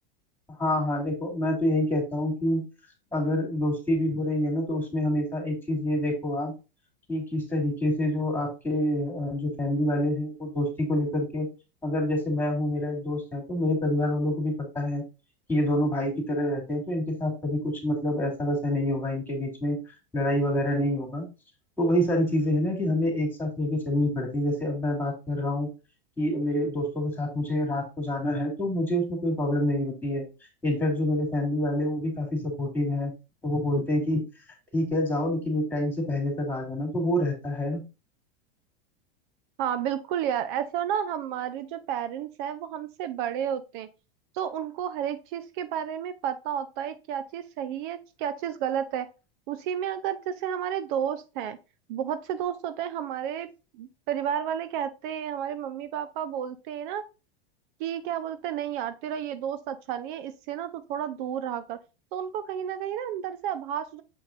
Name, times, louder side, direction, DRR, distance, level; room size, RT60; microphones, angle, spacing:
voice 1, 0.6-2.7 3.1-6.5 7.1-11.5 11.8-15.0 15.5-19.8 20.1-21.3 21.8-25.7 26.2-30.2 30.6-33.1 33.4-34.2 34.7-37.8, left 1 dB, 5° left, 1 dB, 3.0 m, -27 dB
voice 2, 39.6-43.9 44.3-49.1 49.5-51.6 51.9-53.5 53.7-57.0 57.8-61.8 62.1-64.0, right 9 dB, 55° right, 12 dB, 0.6 m, -31 dB
7.0 x 5.8 x 2.5 m, 0.30 s
hypercardioid pair, 105°, 30 cm